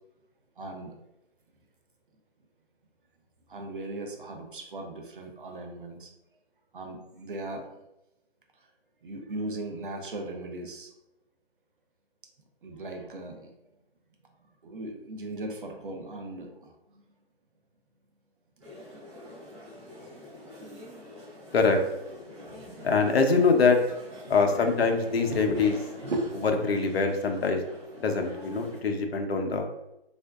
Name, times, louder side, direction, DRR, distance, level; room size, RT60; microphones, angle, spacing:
voice 1, 0.6-0.9 3.5-6.1 6.7-7.7 9.0-10.9 12.6-13.5 14.6-16.7 22.3-23.0 24.2-24.7 25.2-25.6 26.0-26.6, right 2 dB, 55° right, 3 dB, 0.6 m, -37 dB
sound 1, 18.6-28.8, left 1 dB, 30° right, 0.8 m, -45 dB
voice 2, 22.8-23.8 24.3-25.7 26.6-27.6 28.0-29.7, left 4 dB, 70° left, 4 dB, 0.6 m, -24 dB
3.5 x 2.5 x 2.2 m, 0.91 s
hypercardioid pair, 160°, 32 cm